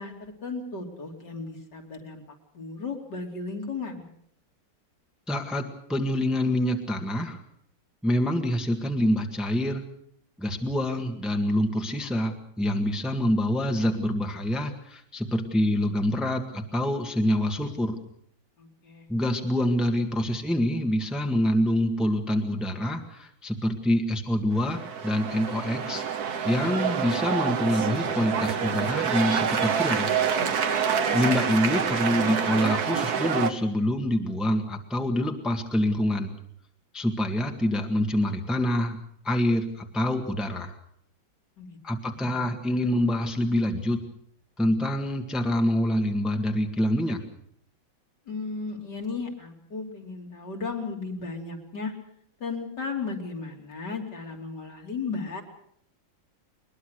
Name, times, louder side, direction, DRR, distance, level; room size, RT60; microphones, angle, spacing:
voice 1, 0.0-2.2 2.5-4.0 18.6-19.1 30.8-31.7 41.6-42.3 48.3-51.9 52.4-55.4, left 4 dB, 65° left, 1 dB, 3.7 m, -35 dB
voice 2, 5.3-7.4 8.0-9.8 10.4-18.0 19.1-26.0 26.4-30.1 31.1-36.3 36.9-39.0 39.2-40.8 41.8-44.0 44.6-47.2, left 1 dB, ahead, 3 dB, 1.6 m, -26 dB
sound 1, 24.6-33.5, right 7 dB, 55° right, 1.8 m, -27 dB
21.5 x 21.5 x 6.6 m, 0.67 s
omnidirectional pair, 2.0 m